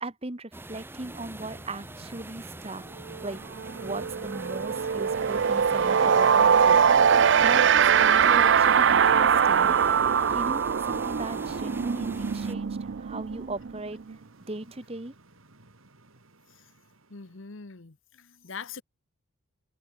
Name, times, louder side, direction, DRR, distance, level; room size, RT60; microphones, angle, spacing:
voice 1, 0.0-2.8 3.2-3.4 3.8-6.8 7.4-10.0 10.3-14.0 14.5-15.1, right 2 dB, 30° right, 1.1 m, -38 dB
sound 1, 0.5-12.5, right 2 dB, 10° right, 0.7 m, -43 dB
sound 2, 1.0-17.6, right 2 dB, 75° right, 2.9 m, -56 dB
sound 3, 3.1-3.3 3.6-14.1, right 7 dB, 55° right, 0.4 m, -22 dB
voice 2, 17.1-18.8, left 5 dB, 65° left, 1.0 m, -42 dB
head